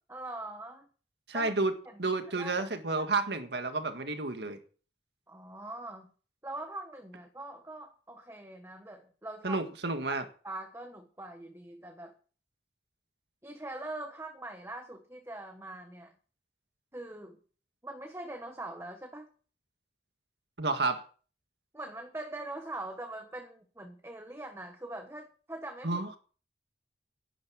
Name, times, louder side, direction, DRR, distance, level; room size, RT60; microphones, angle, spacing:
voice 1, 0.1-0.9 1.3-1.5 1.8-2.0 2.3-2.7 2.9-3.0 5.3-6.1 6.4-9.6 10.1-10.2 10.4-12.1 13.4-16.1 16.9-17.4 17.8-19.3 21.7-26.0, right 2 dB, 15° right, 1.3 m, -42 dB
voice 2, 1.3-1.7 2.0-4.6 9.4-10.2 20.6-21.0 25.8-26.1, right 3 dB, 75° right, 1.9 m, -30 dB
11.0 x 11.0 x 6.4 m
head